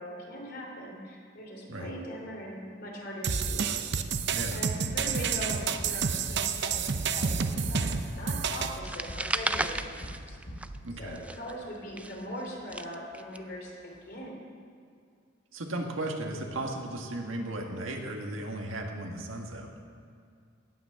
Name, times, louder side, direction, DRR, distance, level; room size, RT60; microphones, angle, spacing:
voice 1, 0.0-3.8 4.5-10.4 11.0-14.6, equal, 55° left, -1 dB, 3.1 m, -41 dB
sound 1, 3.2-8.8, right 6 dB, 60° right, 0.7 m, -29 dB
sound 2, 3.5-11.0, equal, 75° left, 2.9 m, -43 dB
voice 2, 4.3-4.6 10.8-11.2 15.5-19.7, right 1 dB, 85° right, 2 dB, 1.7 m, -35 dB
sound 3, 8.8-10.9 11.2-13.4, right 2 dB, 5° right, 0.3 m, -34 dB
18.5 x 6.2 x 7.5 m, 2.3 s
head